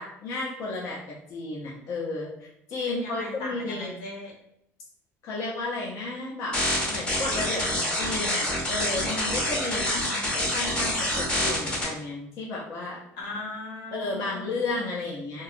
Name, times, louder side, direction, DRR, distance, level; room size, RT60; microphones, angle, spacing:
voice 1, 0.0-2.3 2.7-4.0 5.2-6.6 6.9-13.0 13.9-15.4, left 2 dB, 55° left, -4 dB, 0.5 m, -33 dB
voice 2, 2.9-4.3 9.8-10.3 13.2-14.5, left 2 dB, 85° left, -3 dB, 1.0 m, -38 dB
sound 1, 6.5-11.8, left 1 dB, 15° left, 0.7 m, -27 dB
2.7 x 2.3 x 2.4 m, 0.76 s
cardioid pair, 150°, 6 cm